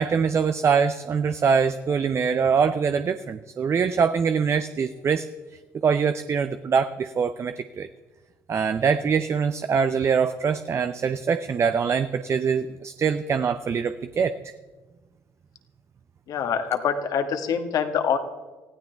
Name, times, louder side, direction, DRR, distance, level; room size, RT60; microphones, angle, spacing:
voice 1, 0.0-5.3 5.8-7.9 8.5-14.3, right 6 dB, 40° right, 10 dB, 0.7 m, -23 dB
voice 2, 16.3-18.2, left 7 dB, 55° left, 6 dB, 1.6 m, -25 dB
20.0 x 15.5 x 3.5 m, 1.2 s
hypercardioid pair, 55°, 8 cm